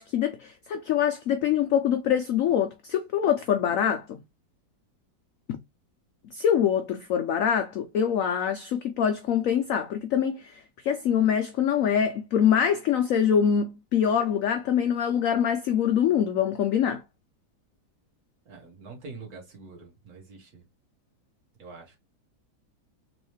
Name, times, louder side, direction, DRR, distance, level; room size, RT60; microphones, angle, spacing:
voice 1, 0.0-4.2 6.3-17.0, left 8 dB, 85° left, 0.7 m, -24 dB
voice 2, 18.5-20.6 21.6-22.0, right 4 dB, 55° right, 1.8 m, -45 dB
3.9 x 3.0 x 3.1 m
omnidirectional pair, 2.0 m